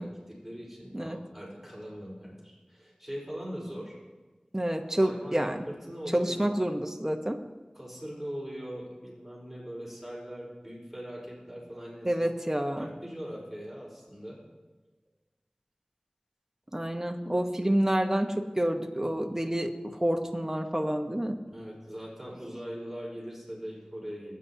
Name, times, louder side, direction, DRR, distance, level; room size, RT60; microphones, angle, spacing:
voice 1, 0.0-4.0 5.0-6.4 7.7-12.1 12.8-14.4 21.5-24.4, equal, 5° right, -5 dB, 4.4 m, -41 dB
voice 2, 4.5-5.6 6.1-7.4 12.0-12.9 16.7-21.3, right 1 dB, 20° right, 4 dB, 1.2 m, -28 dB
22.0 x 9.6 x 2.8 m, 1.2 s
wide cardioid pair, 50°, 2 cm